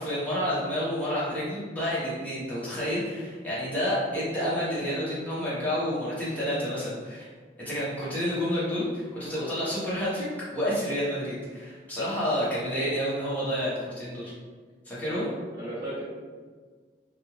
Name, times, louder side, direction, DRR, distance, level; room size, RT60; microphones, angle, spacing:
voice 1, 0.0-7.3 7.6-10.3 10.5-14.3 14.8-15.3, equal, 10° left, -10 dB, 0.9 m, -29 dB
voice 2, 15.0-16.0, right 1 dB, 25° right, -12 dB, 0.9 m, -37 dB
2.5 x 2.3 x 3.1 m, 1.5 s
head